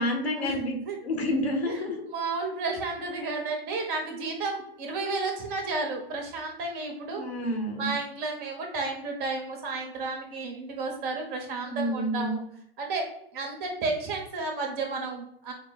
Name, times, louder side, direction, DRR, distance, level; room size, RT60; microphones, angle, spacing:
voice 1, 0.0-0.8 1.0-2.0 7.1-7.9 11.7-12.4, left 1 dB, 80° left, 2 dB, 1.3 m, -29 dB
voice 2, 1.6-7.2 7.8-12.4 12.8-15.5, right 3 dB, 30° right, 1 dB, 1.1 m, -32 dB
4.5 x 2.2 x 4.1 m, 0.71 s
hypercardioid pair, 125°, 31 cm